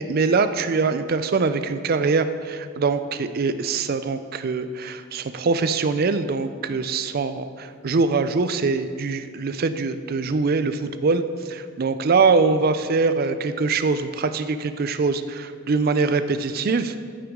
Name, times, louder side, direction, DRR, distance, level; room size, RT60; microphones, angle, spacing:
voice 1, 0.0-17.0, right 4 dB, 45° right, 10 dB, 0.4 m, -23 dB
14.5 x 5.9 x 3.7 m, 2.2 s
head